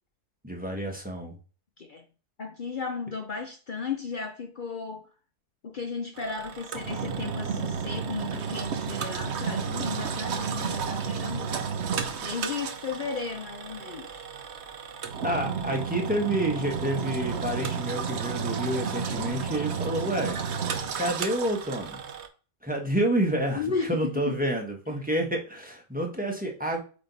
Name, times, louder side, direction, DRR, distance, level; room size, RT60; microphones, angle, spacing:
voice 1, 0.4-1.4 15.2-20.4 20.9-22.0 22.6-23.6 23.9-26.8, right 1 dB, 5° right, 0.9 m, -29 dB
voice 2, 2.4-5.1 5.6-11.5 12.2-14.2 23.5-24.4, left 5 dB, 70° left, 0.4 m, -35 dB
Engine, 6.2-22.3, right 6 dB, 55° right, 0.9 m, -32 dB
8.5 x 3.0 x 4.0 m
omnidirectional pair, 1.7 m